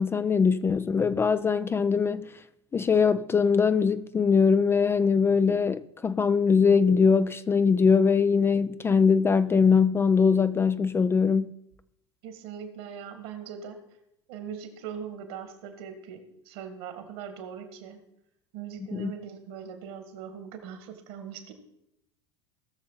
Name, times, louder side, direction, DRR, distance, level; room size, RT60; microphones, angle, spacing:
voice 1, 0.0-2.3 2.7-11.5 18.9-19.1, left 5 dB, 15° left, 0.3 m, -22 dB
voice 2, 12.2-13.8 14.3-18.0 18.5-21.5, right 7 dB, 60° right, 1.8 m, -40 dB
18.0 x 6.7 x 3.9 m
hypercardioid pair, 80°, 14 cm